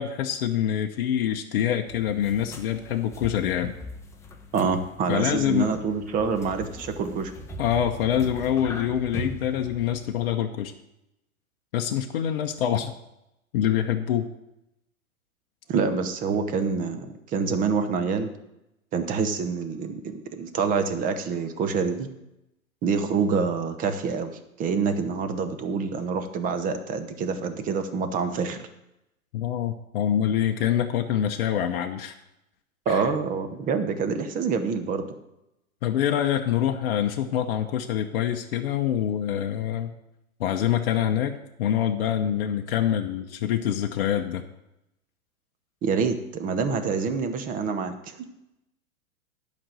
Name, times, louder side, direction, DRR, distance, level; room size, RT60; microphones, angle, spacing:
voice 1, 0.0-3.7 5.1-5.8 7.6-10.7 11.7-12.9 13.5-14.3 29.3-32.1 32.9-33.1 35.8-39.9 40.4-44.4, left 10 dB, 45° left, 4 dB, 0.8 m, -25 dB
sound 1, 1.9-10.3, left 1 dB, 5° left, 0.7 m, -40 dB
voice 2, 4.5-7.3 15.7-18.3 18.9-22.1 22.8-28.7 32.9-35.1 45.8-48.2, right 5 dB, 20° right, 8 dB, 0.9 m, -26 dB
11.0 x 5.3 x 7.6 m, 0.88 s
figure-of-eight pair, 105°, 42 cm